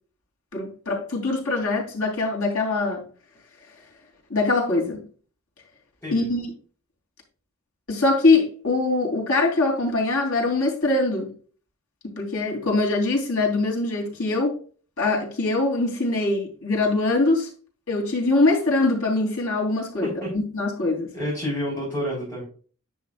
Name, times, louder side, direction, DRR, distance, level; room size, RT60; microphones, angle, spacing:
voice 1, 0.5-3.0 4.3-5.0 6.1-6.5 7.9-11.3 12.0-14.6 15.0-17.5 17.9-21.1, left 2 dB, 85° left, 3.4 m, -23 dB
voice 2, 21.1-22.4, equal, 10° left, 4.2 m, -29 dB
10.0 x 6.1 x 2.5 m
head